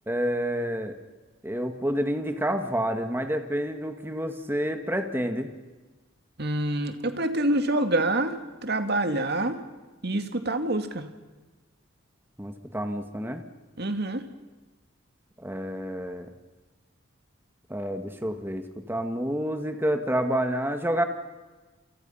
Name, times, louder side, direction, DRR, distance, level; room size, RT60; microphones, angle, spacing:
voice 1, 0.1-1.0 1.4-5.5 12.4-13.4 15.4-16.3 17.7-21.0, equal, 10° right, 6 dB, 1.7 m, -29 dB
voice 2, 6.4-9.6 10.0-11.1 13.8-14.3, right 1 dB, 50° right, 8 dB, 2.1 m, -26 dB
28.5 x 28.5 x 5.7 m, 1.2 s
head